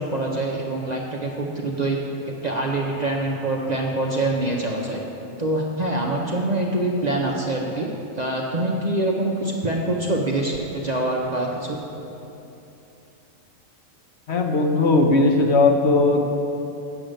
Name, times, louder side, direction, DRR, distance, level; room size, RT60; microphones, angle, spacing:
voice 1, 0.0-2.0 2.3-5.0 5.4-7.9 8.2-11.8, right 2 dB, 40° right, -1 dB, 0.7 m, -25 dB
voice 2, 14.3-16.2, left 3 dB, 60° left, 2 dB, 1.0 m, -18 dB
8.0 x 6.5 x 7.7 m, 2.9 s
omnidirectional pair, 1.4 m